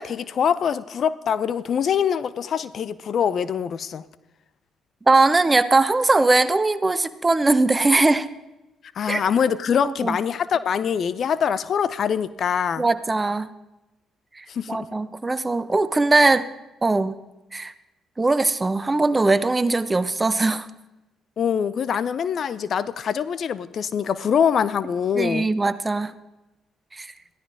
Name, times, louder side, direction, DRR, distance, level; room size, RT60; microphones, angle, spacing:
voice 1, 0.0-4.0 9.0-12.9 14.5-14.9 21.4-25.5, left 7 dB, 55° left, 17 dB, 0.6 m, -24 dB
voice 2, 5.1-8.3 9.1-9.2 9.8-10.2 12.8-13.5 14.4-16.5 16.8-17.2 17.5-17.7 18.2-20.7 25.1-26.1 26.9-27.1, right 3 dB, 25° right, 13 dB, 1.0 m, -20 dB
22.5 x 15.0 x 3.6 m, 1.0 s
hypercardioid pair, 45°, 0 cm